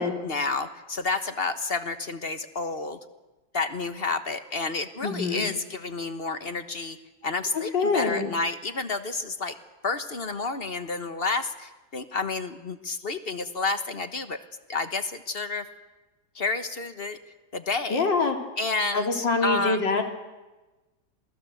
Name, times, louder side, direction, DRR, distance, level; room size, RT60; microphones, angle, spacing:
voice 1, 0.0-3.0 3.5-7.0 7.2-9.6 9.8-14.4 14.7-15.7 16.3-17.2 17.5-18.1 18.6-19.9, left 3 dB, 35° left, 10 dB, 1.3 m, -30 dB
voice 2, 5.0-5.4 7.5-8.3 17.9-18.4 18.9-20.0, left 3 dB, 80° left, 4 dB, 3.6 m, -25 dB
27.5 x 20.0 x 7.9 m, 1.1 s
omnidirectional pair, 1.9 m